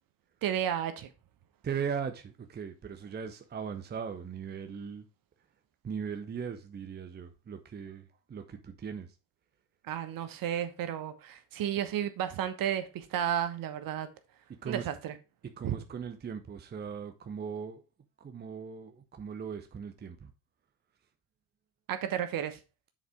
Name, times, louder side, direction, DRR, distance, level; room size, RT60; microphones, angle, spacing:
voice 1, 0.4-1.1 9.8-14.1 14.6-15.2 15.6-15.7 21.9-22.6, right 10 dB, 50° right, 1.2 m, -32 dB
voice 2, 1.6-5.1 5.8-9.1 14.6-14.9 15.6-17.8 18.2-20.3, right 6 dB, 20° right, 0.8 m, -39 dB
7.3 x 4.2 x 4.9 m
hypercardioid pair, 80°, 44 cm